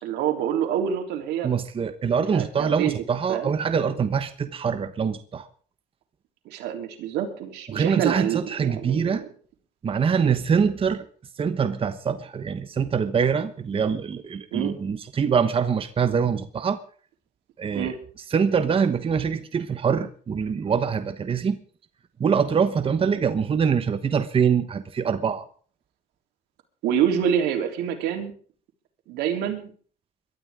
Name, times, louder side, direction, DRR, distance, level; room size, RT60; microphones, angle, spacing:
voice 1, 0.0-1.5 2.3-2.9 3.3-3.5 6.4-9.3 10.2-10.4 14.5-14.7 17.7-17.9 26.8-28.3 29.1-29.7, right 9 dB, 85° right, 4 dB, 3.4 m, -26 dB
voice 2, 1.4-5.5 7.7-9.2 9.8-11.1 11.4-16.8 17.6-17.9 18.3-21.6 22.2-25.4, right 6 dB, 35° right, 9 dB, 1.2 m, -24 dB
22.5 x 12.5 x 3.7 m, 0.43 s
cardioid pair, 110°, 17 cm